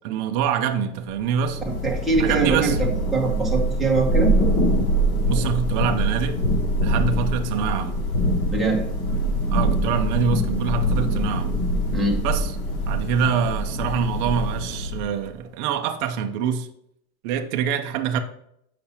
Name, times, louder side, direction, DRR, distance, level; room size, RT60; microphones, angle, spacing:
voice 1, 0.0-1.6 2.2-2.8 5.3-6.4 6.8-8.0 9.5-11.5 12.2-12.6 12.9-16.7 17.2-18.2, right 7 dB, 35° right, 0.5 m, -25 dB
Thunder / Rain, 1.2-15.3, equal, 70° left, 2.9 m, -24 dB
voice 2, 1.8-4.4 6.9-7.0 8.5-8.8 11.9-12.2, right 4 dB, ahead, 0.9 m, -23 dB
8.4 x 5.8 x 2.8 m
supercardioid pair, 155°, 45 cm